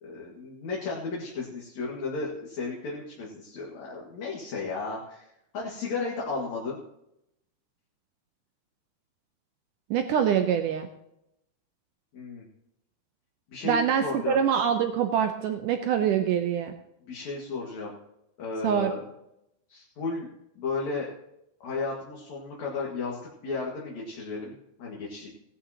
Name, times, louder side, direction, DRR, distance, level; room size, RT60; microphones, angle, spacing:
voice 1, 0.0-5.3 5.5-6.8 12.1-12.4 13.5-14.4 17.1-18.0 18.4-19.0 19.7-20.3 20.6-21.1 21.6-25.3, left 4 dB, 50° left, -4 dB, 2.8 m, -34 dB
voice 2, 9.9-10.9 13.6-16.7 18.6-18.9, right 8 dB, 80° right, 6 dB, 1.9 m, -25 dB
18.0 x 11.5 x 2.9 m, 0.83 s
omnidirectional pair, 4.6 m